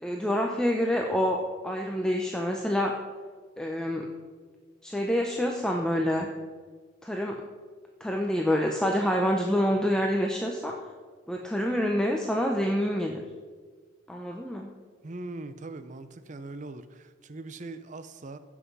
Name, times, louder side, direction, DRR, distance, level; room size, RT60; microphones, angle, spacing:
voice 1, 0.0-2.9 3.6-4.1 4.8-6.3 7.0-7.4 8.0-10.7 11.3-13.2 14.1-14.7, equal, 5° left, 1 dB, 0.7 m, -27 dB
voice 2, 15.0-18.4, right 2 dB, 40° right, 11 dB, 0.6 m, -41 dB
15.5 x 6.1 x 5.4 m, 1.5 s
head